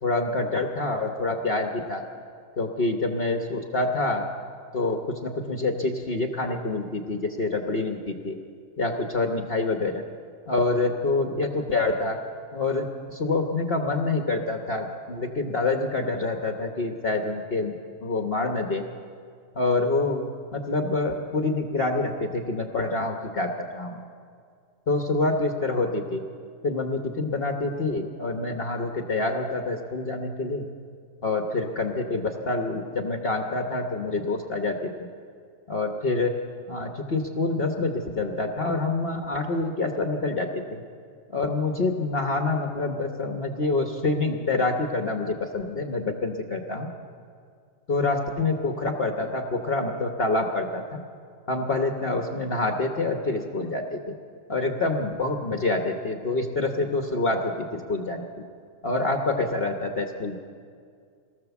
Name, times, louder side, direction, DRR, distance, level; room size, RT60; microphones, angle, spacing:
voice 1, 0.0-2.0 2.6-4.2 4.7-8.4 8.8-10.0 10.5-12.2 12.5-18.8 19.5-20.2 20.5-24.0 24.9-26.2 26.6-30.7 31.2-34.9 35.7-36.3 36.7-40.8 41.3-46.9 47.9-51.0 51.5-54.1 54.5-58.3 58.8-60.4, left 2 dB, 45° left, 3 dB, 1.3 m, -26 dB
23.5 x 18.0 x 7.1 m, 2.2 s
omnidirectional pair, 1.5 m